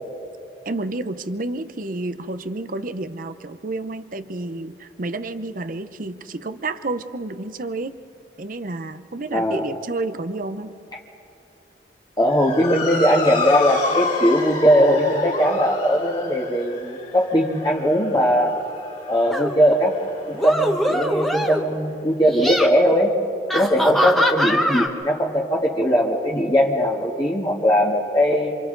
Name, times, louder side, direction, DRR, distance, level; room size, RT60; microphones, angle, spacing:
voice 1, 0.6-7.9 8.4-10.7, right 2 dB, 50° right, 11 dB, 0.8 m, -30 dB
voice 2, 9.3-9.6 12.2-18.5 19.1-20.0 20.3-23.1 23.5-28.6, equal, 25° left, -3 dB, 1.7 m, -19 dB
Motor vehicle (road) / Siren, 12.3-20.9, left 4 dB, 45° left, 4.2 m, -30 dB
sound 1, 19.3-19.6 20.3-21.7 22.2-22.7 23.5-24.9, equal, ahead, 1.4 m, -22 dB
28.0 x 27.0 x 4.0 m, 2.7 s
head